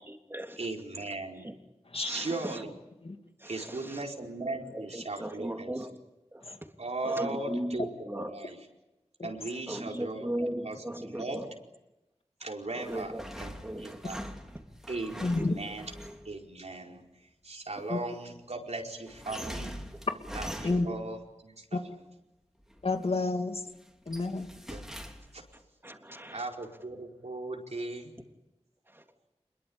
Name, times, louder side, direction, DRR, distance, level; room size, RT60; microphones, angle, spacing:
voice 1, 0.6-1.5 2.0-2.8 3.4-5.7 6.8-7.9 8.1-8.6 9.2-11.4 12.4-13.1 13.4-14.2 14.9-15.9 16.2-17.0 17.4-19.8 20.3-21.8 24.7-24.8 25.3-25.4 26.3-28.1, right 2 dB, 75° right, 4.8 m, -38 dB
voice 2, 2.0-2.6 3.4-4.0 4.4-6.0 6.3-6.5 7.0-8.4 9.7-11.5 12.7-13.2 13.6-14.0 15.3-15.7 17.7-17.9 25.8-26.5 28.9-29.3, right 1 dB, 20° right, 3.3 m, -38 dB
sound 1, 12.8-16.3 19.1-21.1 22.6-23.2 23.6-25.5, equal, 5° right, 3.9 m, -43 dB
voice 3, 15.2-15.6 17.9-18.0 20.6-20.9 21.7-21.8 22.8-23.6 24.1-24.5, left 3 dB, 55° left, 2.6 m, -29 dB
27.0 x 22.0 x 8.8 m
wide cardioid pair, 50°, 12 cm